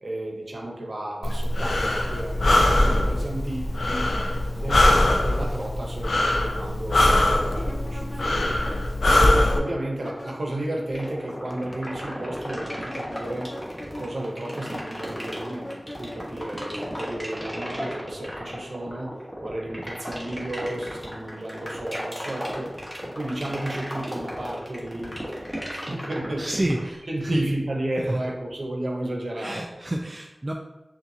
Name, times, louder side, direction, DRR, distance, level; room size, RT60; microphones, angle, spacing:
voice 1, 0.0-4.2 4.5-4.8 5.2-8.6 9.0-13.5 14.0-22.7 23.0-26.7 27.1-29.7, right 1 dB, 65° right, 0 dB, 0.9 m, -33 dB
Breathing, 1.2-9.6, left 1 dB, 90° left, 0.4 m, -22 dB
sound 1, 7.5-10.7 10.9-17.6, left 1 dB, 40° left, 0.6 m, -41 dB
sound 2, 11.0-26.9, equal, 10° left, 1.2 m, -34 dB
voice 2, 26.4-27.5 28.0-28.3 29.4-30.5, right 1 dB, 35° right, 1 dB, 0.4 m, -29 dB
5.5 x 2.5 x 2.7 m, 1.0 s
wide cardioid pair, 50°, 0 cm